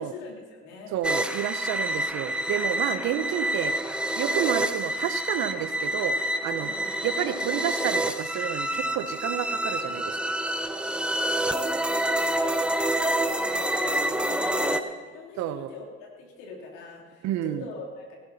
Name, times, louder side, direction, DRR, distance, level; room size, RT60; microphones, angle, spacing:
voice 1, 0.0-0.9 2.3-2.6 6.6-6.9 10.8-18.2, left 3 dB, 75° left, 0 dB, 3.5 m, -43 dB
voice 2, 0.9-3.7 4.1-6.1 6.4-6.7 7.0-10.3 15.4-15.7 17.2-17.7, right 11 dB, 65° right, 12 dB, 1.1 m, -30 dB
sound 1, 1.0-14.8, right 1 dB, 5° right, 1.1 m, -27 dB
16.5 x 15.0 x 4.3 m, 1.4 s
hypercardioid pair, 65°, 30 cm